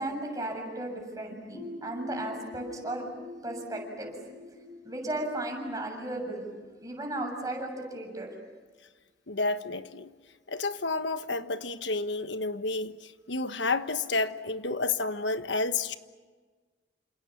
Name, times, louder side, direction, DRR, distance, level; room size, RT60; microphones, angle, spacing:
voice 1, 0.0-3.0 3.4-4.1 4.5-4.6 4.8-6.5 6.8-8.3, right 1 dB, 20° right, 2 dB, 7.2 m, -35 dB
sound 1, 1.5-7.1, left 2 dB, 30° left, 6.3 m, -46 dB
voice 2, 9.3-10.1 10.5-15.9, left 3 dB, 80° left, 10 dB, 1.3 m, -30 dB
29.0 x 27.5 x 7.3 m, 1.4 s
head